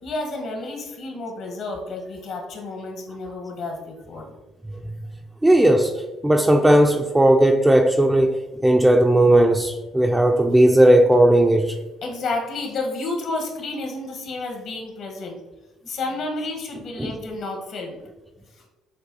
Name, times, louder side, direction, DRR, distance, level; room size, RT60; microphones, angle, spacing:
voice 1, 0.0-4.3 12.0-15.4 15.9-18.0, left 2 dB, 65° left, 2 dB, 1.0 m, -31 dB
voice 2, 5.4-5.9 6.2-11.7 17.0-17.2, right 1 dB, 10° right, 3 dB, 0.3 m, -16 dB
6.4 x 2.3 x 2.6 m, 1.1 s
supercardioid pair, 80°, 0 cm